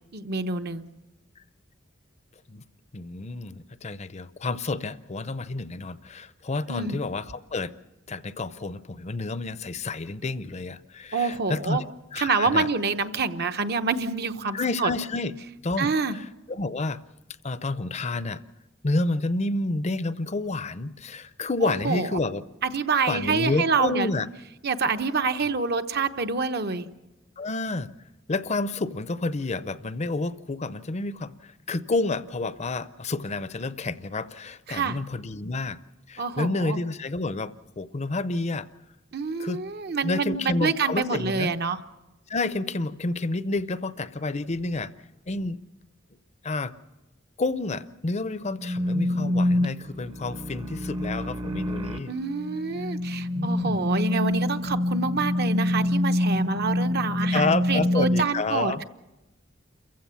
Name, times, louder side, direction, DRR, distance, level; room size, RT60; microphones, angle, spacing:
voice 1, 0.1-0.8 6.7-7.0 11.1-11.8 12.2-14.9 15.8-16.2 21.6-22.1 22.6-24.1 24.6-26.9 34.7-35.0 36.2-36.8 39.1-41.8 52.1-58.8, right 4 dB, 55° right, 9 dB, 1.0 m, -27 dB
voice 2, 2.9-7.7 8.1-11.8 12.1-12.7 14.5-17.0 17.4-18.4 18.8-22.4 23.1-24.3 27.4-27.9 28.3-35.8 36.1-38.7 39.4-39.6 40.0-41.5 42.3-44.9 45.3-45.6 46.4-46.7 47.4-52.1 53.3-53.8 57.3-58.8, left 3 dB, 35° left, 15 dB, 0.6 m, -29 dB
sound 1, 48.6-58.2, left 1 dB, 25° right, 0.8 m, -26 dB
28.5 x 15.5 x 7.1 m, 1.0 s
head